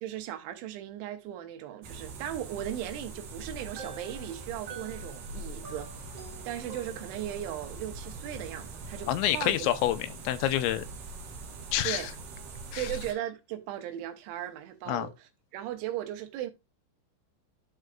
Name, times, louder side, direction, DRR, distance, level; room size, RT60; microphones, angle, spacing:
voice 1, 0.0-5.9 6.5-9.7 11.8-12.1 12.8-16.5, right 12 dB, 85° right, 3.3 m, -37 dB
sound 1, 1.8-13.1, right 3 dB, 65° right, 2.5 m, -43 dB
sound 2, 3.5-7.5, right 4 dB, 35° right, 3.4 m, -47 dB
voice 2, 9.1-10.9 11.7-12.1 12.7-12.9 14.9-15.1, left 13 dB, 85° left, 2.8 m, -28 dB
13.0 x 4.5 x 2.4 m
omnidirectional pair, 5.3 m